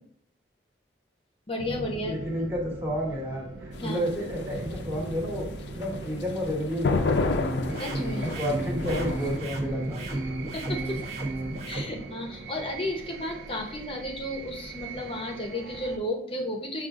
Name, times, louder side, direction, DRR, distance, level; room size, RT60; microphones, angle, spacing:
voice 1, 1.5-2.2 3.8-4.0 7.8-8.3 10.5-11.0 11.7-16.9, left 1 dB, 30° left, 1 dB, 0.7 m, -33 dB
sound 1, 1.6-16.0, right 3 dB, 75° right, 0.5 m, -40 dB
voice 2, 2.1-5.5 5.7-7.4 8.2-10.1, equal, 10° right, -4 dB, 1.2 m, -31 dB
sound 2, 3.7-9.4, left 3 dB, 70° left, 0.4 m, -30 dB
sound 3, 7.4-11.8, right 1 dB, 35° right, 0.9 m, -32 dB
5.9 x 2.4 x 3.6 m, 0.66 s
head